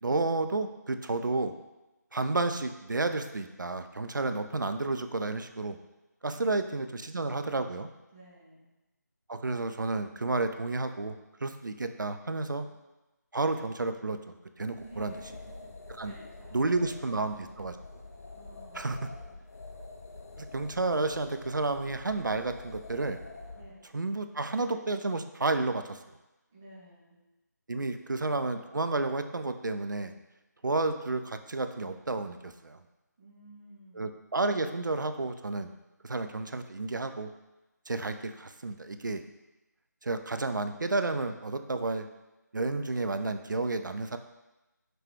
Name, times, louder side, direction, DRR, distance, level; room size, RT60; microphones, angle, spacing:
voice 1, 0.0-1.5 2.1-5.8 6.2-7.9 9.3-11.2 11.4-12.7 13.3-15.1 16.0-16.1 16.5-17.8 18.7-19.0 20.4-23.2 23.9-26.0 27.7-30.1 30.6-32.8 34.0-35.7 36.0-37.3 37.9-39.2 40.0-42.1 42.5-44.2, right 3 dB, 85° right, 8 dB, 0.4 m, -31 dB
voice 2, 8.1-8.7 14.7-15.7 16.0-17.3 18.4-19.0 19.3-19.6 23.5-23.9 26.5-27.2 28.0-28.1 30.6-31.1 33.2-34.2, right 2 dB, 5° right, -8 dB, 0.3 m, -54 dB
sound 1, 14.6-23.7, left 3 dB, 55° left, 0.5 m, -47 dB
5.9 x 2.2 x 3.2 m, 1.0 s
figure-of-eight pair, 160°, 10 cm